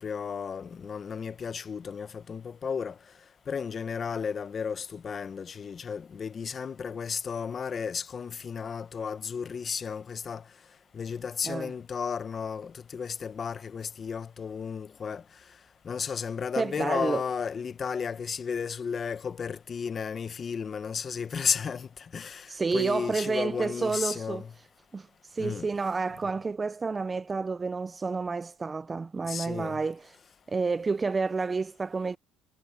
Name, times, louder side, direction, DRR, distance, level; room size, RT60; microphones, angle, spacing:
voice 1, 0.0-3.0 3.5-10.4 10.9-15.2 15.8-24.5 25.4-25.7 29.3-29.8, left 6 dB, 30° left, 0.9 m, -33 dB
voice 2, 16.6-17.2 22.5-24.4 24.9-30.0 30.5-32.2, right 4 dB, 15° right, 0.3 m, -30 dB
cardioid pair, 145°, 0 cm